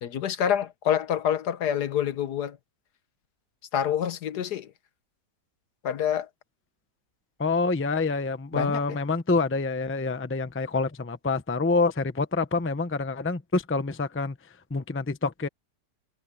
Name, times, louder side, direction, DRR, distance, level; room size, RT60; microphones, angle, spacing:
voice 1, 0.0-2.6 3.7-4.7 5.8-6.3 8.5-9.0, left 9 dB, 70° left, 1.5 m, -27 dB
voice 2, 7.4-14.4 14.7-15.5, left 3 dB, 10° left, 0.6 m, -27 dB
omnidirectional pair, 1.8 m